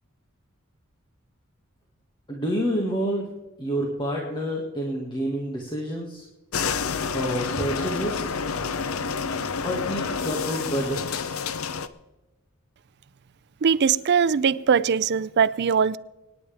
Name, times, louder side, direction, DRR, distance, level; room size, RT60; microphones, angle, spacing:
voice 1, 2.3-3.3 3.6-6.3 7.1-8.3 9.6-11.3, equal, 20° left, 2.0 m, -28 dB
sound 1, 6.5-11.9, left 5 dB, 80° left, 0.7 m, -29 dB
voice 2, 13.6-16.0, right 6 dB, 55° right, 0.4 m, -21 dB
26.0 x 10.5 x 3.5 m
head